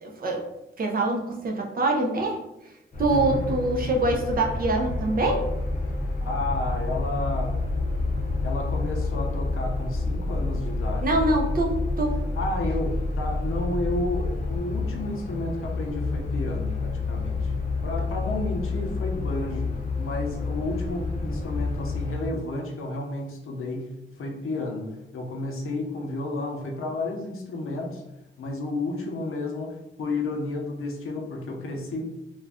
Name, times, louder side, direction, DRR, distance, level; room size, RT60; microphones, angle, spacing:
voice 1, 0.0-0.5 0.8-2.4 3.0-5.5 11.0-12.2, right 2 dB, 45° right, 1 dB, 0.5 m, -24 dB
sound 1, 2.9-22.3, left 3 dB, 35° left, 0.5 m, -30 dB
voice 2, 3.1-3.4 6.2-7.6 8.4-11.4 12.4-17.5 17.8-23.9 24.2-28.0 28.4-32.1, left 2 dB, 90° left, 1 dB, 0.6 m, -32 dB
sound 2, 3.1-15.8, left 1 dB, 80° right, 0.7 m, -32 dB
2.4 x 2.2 x 3.4 m, 0.91 s
wide cardioid pair, 145°, 21 cm